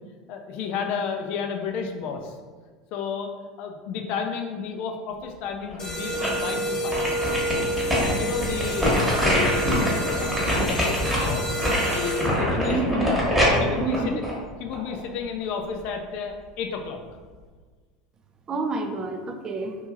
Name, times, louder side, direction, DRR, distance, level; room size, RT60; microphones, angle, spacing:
voice 1, 0.3-2.4 2.9-3.3 3.6-7.1 8.0-11.6 11.9-13.1 13.6-14.1 14.6-17.0, left 6 dB, 60° left, 4 dB, 0.4 m, -32 dB
sound 1, 5.7-6.5 6.9-15.0 15.4-15.5, equal, 10° right, 1.1 m, -24 dB
sound 2, 5.8-12.6, right 1 dB, 35° left, 0.8 m, -29 dB
voice 2, 12.7-13.1 13.5-14.2 18.5-19.8, right 3 dB, 30° right, 5 dB, 0.3 m, -28 dB
2.8 x 2.6 x 2.4 m, 1.4 s
hypercardioid pair, 90°, 2 cm